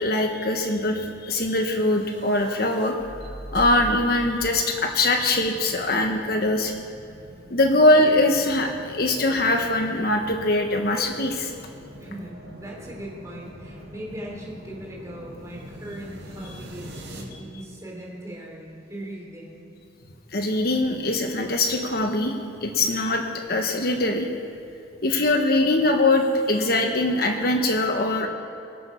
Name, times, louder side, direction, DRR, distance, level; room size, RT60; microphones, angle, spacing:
voice 1, 0.0-2.9 3.5-6.7 7.5-11.5 20.3-22.3 22.6-24.3 25.0-28.3, left 2 dB, 50° left, 3 dB, 1.1 m, -22 dB
sound 1, 1.5-17.2, equal, 80° right, 4.3 m, -42 dB
voice 2, 12.0-19.7, right 1 dB, 15° right, -2 dB, 3.3 m, -39 dB
24.0 x 8.2 x 5.8 m, 2.7 s
head